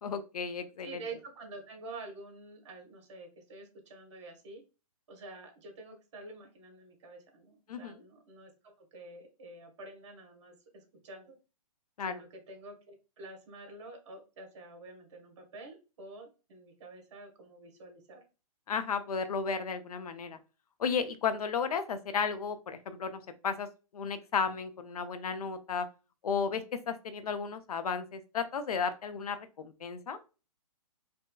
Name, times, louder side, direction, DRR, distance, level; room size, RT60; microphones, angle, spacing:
voice 1, 0.0-1.0 7.7-8.0 12.0-12.2 18.7-20.4 20.8-23.7 23.9-25.9 26.2-30.2, left 6 dB, 75° left, 9 dB, 0.6 m, -34 dB
voice 2, 0.8-4.6 5.1-11.3 12.0-18.2, right 2 dB, 50° right, 3 dB, 1.2 m, -48 dB
3.3 x 2.9 x 2.2 m, 0.32 s
hypercardioid pair, 160°, 19 cm